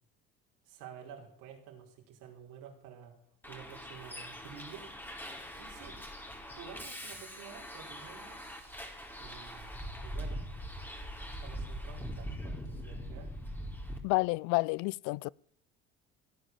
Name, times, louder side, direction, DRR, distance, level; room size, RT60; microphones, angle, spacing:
voice 1, 0.7-3.1 3.5-4.9 5.6-6.0 6.5-9.7 10.0-10.4 11.3-13.3, right 8 dB, 70° right, 4.8 m, -51 dB
Bus, 3.4-14.0, equal, 5° left, 4.0 m, -42 dB
voice 2, 14.0-15.3, left 25 dB, 70° left, 0.5 m, -30 dB
17.0 x 9.7 x 7.4 m
hypercardioid pair, 75°, 32 cm